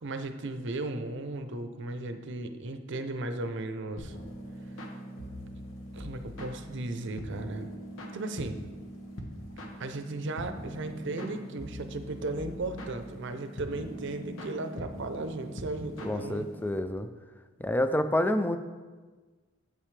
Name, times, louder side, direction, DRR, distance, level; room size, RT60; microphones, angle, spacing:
voice 1, 0.0-4.2 5.9-7.7 8.1-8.6 9.8-16.5, right 2 dB, 65° right, 8 dB, 0.7 m, -36 dB
sound 1, 4.0-16.8, equal, 75° left, 1.1 m, -42 dB
voice 2, 16.0-17.1 17.6-18.6, left 1 dB, 10° left, 9 dB, 0.4 m, -28 dB
8.9 x 8.1 x 3.3 m, 1.4 s
head